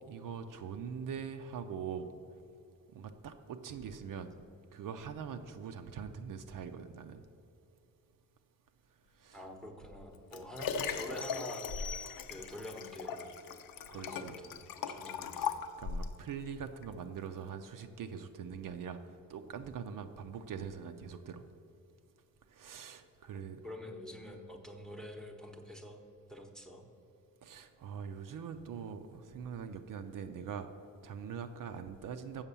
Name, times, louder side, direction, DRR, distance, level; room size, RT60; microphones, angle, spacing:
voice 1, 0.0-2.1 2.9-4.4 4.7-7.3 9.1-9.4 13.9-14.3 15.8-19.0 19.3-21.4 22.5-23.6 27.4-30.7 31.0-32.4, right 7 dB, 65° right, 7 dB, 0.6 m, -43 dB
voice 2, 9.3-11.7 12.3-13.3 13.9-14.7 14.9-15.7 23.6-26.0 26.3-26.8, left 1 dB, ahead, 4 dB, 0.8 m, -46 dB
Liquid, 9.9-16.2 16.8-16.9, left 6 dB, 75° left, 0.6 m, -39 dB
sound 1, 11.2-12.7, left 6 dB, 25° left, 0.4 m, -46 dB
7.2 x 6.4 x 6.8 m, 2.6 s
cardioid pair, 125°, 35 cm